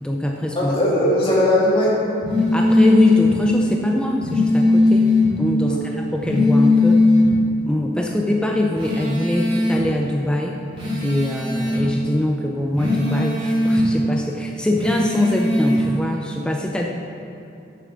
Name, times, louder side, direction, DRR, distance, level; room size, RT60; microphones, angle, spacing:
voice 1, 0.0-0.8 2.5-7.0 7.7-10.6 11.0-16.9, left 1 dB, 5° left, 0 dB, 0.5 m, -23 dB
voice 2, 0.6-2.0 5.6-5.9, left 1 dB, 25° left, -6 dB, 2.1 m, -19 dB
sound 1, 2.2-3.3 4.2-5.3 6.2-7.3 8.8-9.8 10.8-11.8 12.8-13.8 14.8-15.8, left 2 dB, 30° right, 2.2 m, -18 dB
9.2 x 6.8 x 6.5 m, 2.7 s
head